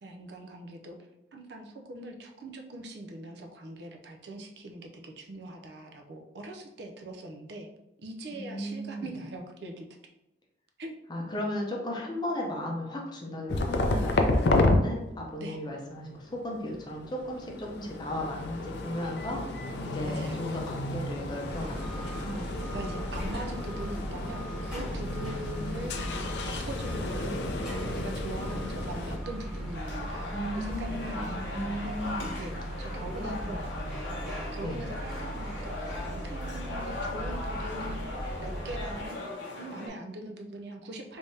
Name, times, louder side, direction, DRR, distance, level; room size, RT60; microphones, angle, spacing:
voice 1, 0.0-1.0 1.3-7.7 8.0-9.9 10.8-11.0 15.4-15.6 20.0-20.4 22.7-26.0 26.4-27.5 27.9-30.2 30.5-31.6 32.4-33.6 34.2-35.8 36.0-38.0 38.4-39.2 39.6-41.2, right 1 dB, 70° right, 3 dB, 0.5 m, -41 dB
voice 2, 8.3-9.1 11.1-22.5 30.3-32.4 32.8-34.0 34.6-34.8, left 1 dB, 25° left, -1 dB, 0.6 m, -36 dB
sound 1, 13.5-14.8 16.4-29.2, left 2 dB, 70° left, 0.4 m, -31 dB
sound 2, 21.5-39.1, equal, ahead, 1.4 m, -38 dB
sound 3, 29.7-39.9, left 2 dB, 85° left, 0.8 m, -39 dB
3.4 x 3.3 x 2.7 m, 0.91 s
head